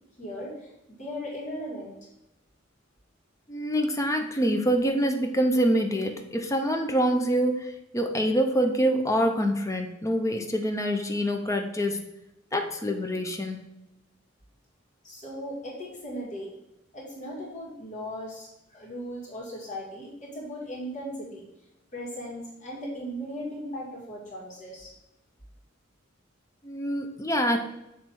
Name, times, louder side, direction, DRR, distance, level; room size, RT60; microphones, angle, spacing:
voice 1, 0.2-2.0 15.0-16.5 16.9-21.5 21.9-24.9, equal, 40° left, -4 dB, 1.9 m, -37 dB
voice 2, 3.5-12.0 12.5-13.7 26.6-27.6, equal, 15° left, 4 dB, 0.6 m, -26 dB
7.1 x 3.2 x 4.5 m, 0.88 s
head